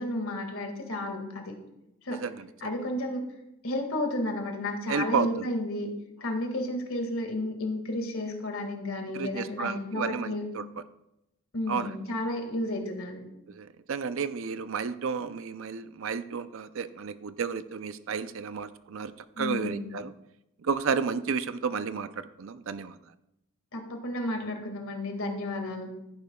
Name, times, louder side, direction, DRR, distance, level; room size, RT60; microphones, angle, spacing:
voice 1, 0.0-1.6 2.0-2.2 2.6-3.3 3.6-5.9 6.2-10.4 11.5-13.3 19.4-19.9 23.7-25.9, left 1 dB, 75° left, 3 dB, 1.9 m, -32 dB
voice 2, 4.9-5.5 9.1-10.6 11.7-11.9 13.5-20.1 20.6-23.0, right 6 dB, 65° right, 12 dB, 0.5 m, -32 dB
15.5 x 9.5 x 2.3 m, 0.86 s
head